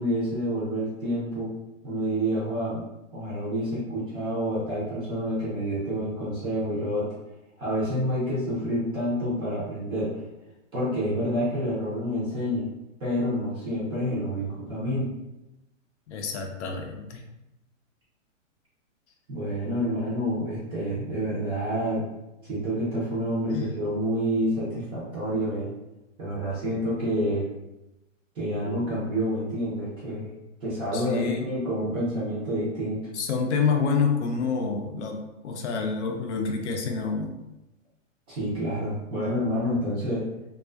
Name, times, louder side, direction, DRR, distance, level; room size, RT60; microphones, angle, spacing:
voice 1, 0.0-1.5 1.8-2.8 3.1-7.1 7.6-10.2 10.7-12.7 13.0-15.1 19.3-22.1 22.5-25.7 26.2-27.4 28.4-30.3 30.6-33.0 38.3-40.3, equal, 15° right, -8 dB, 0.5 m, -28 dB
voice 2, 16.1-17.2 23.5-23.7 30.9-31.5 33.1-37.4, left 5 dB, 60° left, 3 dB, 0.5 m, -28 dB
2.3 x 2.3 x 2.3 m, 0.95 s
hypercardioid pair, 135°, 39 cm